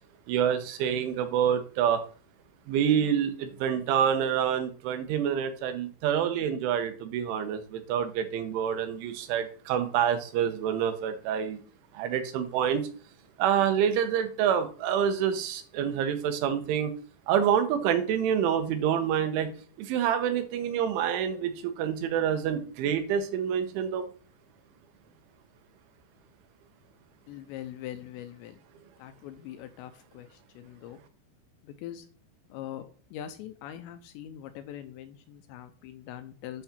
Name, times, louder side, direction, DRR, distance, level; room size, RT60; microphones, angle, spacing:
voice 1, 0.3-2.0 2.7-11.6 11.9-12.9 13.4-16.9 17.3-19.5 19.8-24.1, right 8 dB, 85° right, 9 dB, 3.4 m, -27 dB
voice 2, 27.3-28.6 29.0-31.0 31.6-32.1 32.5-36.6, left 11 dB, 80° left, 9 dB, 2.7 m, -42 dB
8.5 x 5.8 x 4.3 m, 0.41 s
omnidirectional pair, 5.5 m